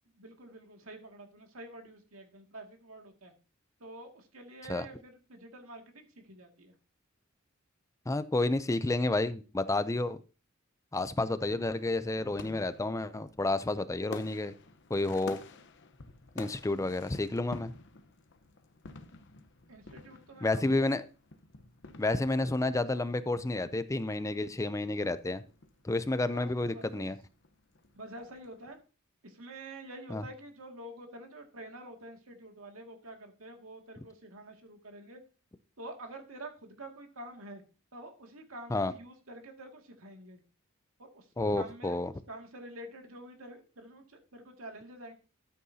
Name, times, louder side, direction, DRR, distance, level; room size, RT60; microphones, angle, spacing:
voice 1, 0.1-3.3 3.8-6.8 19.7-20.9 26.3-27.1 28.0-28.8 29.2-35.2 35.8-37.6 37.9-40.4 41.0-41.3 41.5-42.0 42.3-45.1, right 1 dB, 85° right, 2.2 m, -47 dB
voice 2, 8.1-10.2 10.9-14.5 14.9-15.4 16.4-17.7 20.4-21.0 22.0-25.4 25.8-27.2 30.1-30.2 38.7-38.9 41.4-42.1, left 2 dB, 15° left, 0.4 m, -30 dB
sound 1, 11.4-28.8, left 3 dB, 60° left, 1.0 m, -51 dB
13.5 x 8.4 x 2.8 m
head